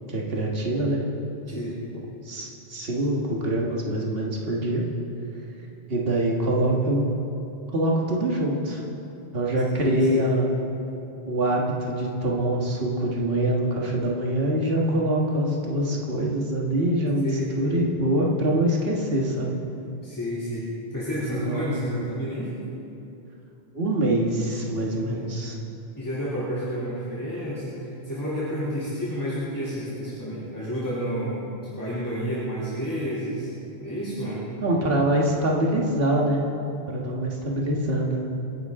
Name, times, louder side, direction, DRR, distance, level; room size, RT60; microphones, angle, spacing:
voice 1, 0.1-1.0 1.5-1.7 2.2-4.8 5.9-7.1 7.7-8.8 9.3-10.5 11.3-17.3 17.6-19.6 21.3-21.9 23.7-25.6 34.6-36.5 36.9-38.2, right 1 dB, 65° right, -3 dB, 1.9 m, -24 dB
voice 2, 9.8-10.3 17.2-17.5 20.0-22.5 24.9-25.3 26.0-33.5 33.8-34.4, equal, 20° left, -10 dB, 3.2 m, -30 dB
29.0 x 10.5 x 3.7 m, 2.9 s
omnidirectional pair, 1.1 m